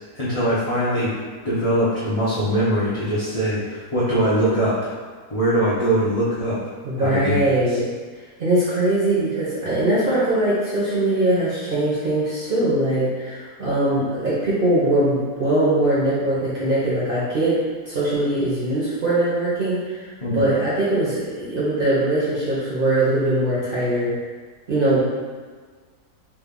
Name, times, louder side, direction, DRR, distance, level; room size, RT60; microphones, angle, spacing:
voice 1, 0.1-1.1 1.4-4.9 5.3-6.6 7.0-7.8 20.2-20.4, right 1 dB, 75° left, -11 dB, 0.3 m, -22 dB
voice 2, 6.8-7.8 8.4-17.6 17.8-20.1 20.3-24.1 24.7-25.0, right 1 dB, 50° right, -9 dB, 0.7 m, -21 dB
3.2 x 2.2 x 3.6 m, 1.5 s
omnidirectional pair, 1.8 m